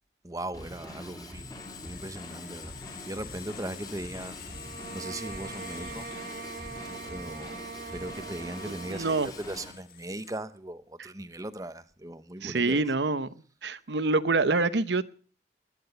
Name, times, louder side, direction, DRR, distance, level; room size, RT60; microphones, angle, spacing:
voice 1, 0.2-1.5 1.8-4.6 4.9-6.1 7.0-7.6 7.9-12.8, right 1 dB, 20° right, 0.9 m, -39 dB
Drum kit / Drum, 0.5-9.7, left 1 dB, 20° left, 3.5 m, -44 dB
sound 1, 1.3-10.4, left 8 dB, 55° left, 1.8 m, -48 dB
sound 2, 4.5-9.4, right 4 dB, 55° right, 1.2 m, -42 dB
voice 2, 8.9-9.3 12.4-13.3 13.6-15.0, right 3 dB, 80° right, 0.9 m, -26 dB
20.0 x 10.0 x 6.8 m
head